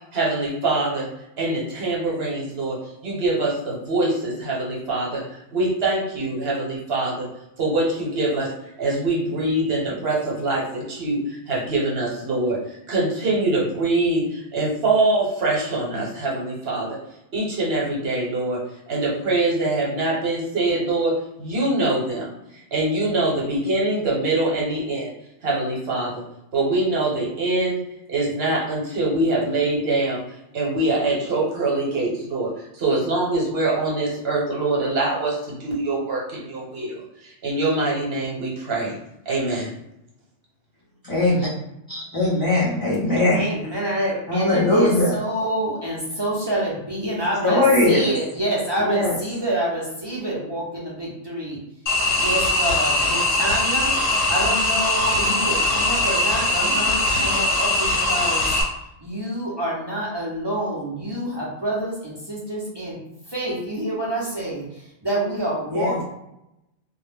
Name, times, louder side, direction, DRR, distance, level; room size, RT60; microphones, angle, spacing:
voice 1, 0.1-1.1 1.4-2.8 3.0-7.3 7.6-8.5 8.8-11.2 11.5-12.6 12.9-17.0 17.3-18.6 18.9-25.1 25.4-26.2 26.5-27.8 28.1-30.2 30.5-37.0 37.4-38.9 39.3-39.7, right 2 dB, 60° right, 1.0 m, -24 dB
voice 2, 41.0-41.5 41.9-43.5 44.3-45.2 47.4-48.1 48.8-49.2 65.7-66.0, left 2 dB, 25° left, 0.5 m, -20 dB
voice 3, 43.3-51.6 52.2-53.9 54.3-58.5 59.0-63.0 63.3-66.0, right 1 dB, 35° right, 0.4 m, -27 dB
sound 1, 51.9-58.6, left 2 dB, 60° left, 0.8 m, -21 dB
2.2 x 2.1 x 3.2 m
omnidirectional pair, 1.2 m